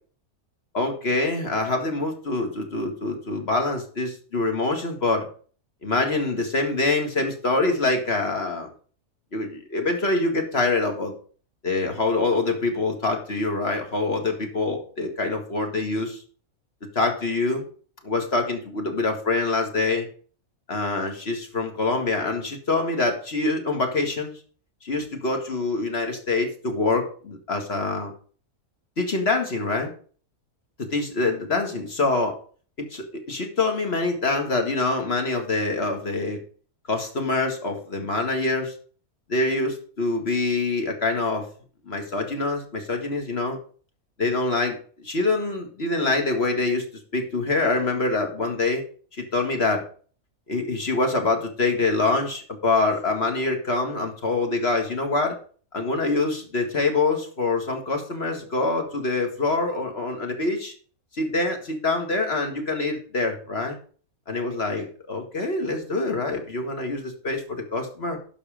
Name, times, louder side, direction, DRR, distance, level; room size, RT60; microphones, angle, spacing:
voice 1, 0.7-5.3 5.8-8.7 9.3-11.1 11.6-16.2 17.0-17.6 18.0-20.1 20.7-24.4 24.8-28.1 29.0-29.9 30.9-32.3 32.8-36.4 36.9-38.7 39.3-41.5 41.9-43.6 44.2-44.8 45.0-46.8 47.1-48.8 49.2-49.9 50.5-55.4 55.7-60.7 61.1-63.8 64.3-67.4 67.7-68.2, left 3 dB, 45° left, 4 dB, 2.2 m, -25 dB
11.5 x 5.7 x 5.0 m, 0.42 s
omnidirectional pair, 1.6 m